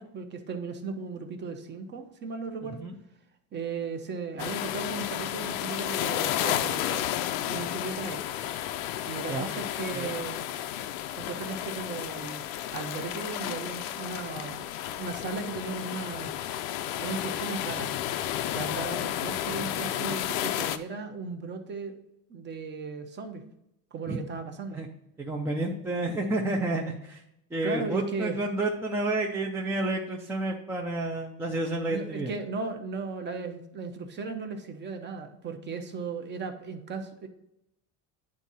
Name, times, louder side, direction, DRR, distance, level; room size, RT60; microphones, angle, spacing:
voice 1, 0.0-2.8 3.5-7.1 7.4-8.2 9.1-10.4 11.2-12.4 12.7-14.6 15.0-16.3 17.0-17.9 18.5-22.0 22.3-23.4 23.9-24.8 27.6-28.4 31.9-37.3, right 4 dB, 25° right, 6 dB, 0.8 m, -36 dB
voice 2, 2.6-2.9 9.3-9.5 9.9-10.1 24.1-24.2 24.7-24.9 25.2-27.2 27.5-32.3, right 2 dB, 5° right, -1 dB, 0.4 m, -30 dB
sound 1, 4.4-20.8, left 12 dB, 85° left, 0.7 m, -32 dB
9.8 x 3.7 x 4.1 m, 0.82 s
cardioid pair, 155°, 41 cm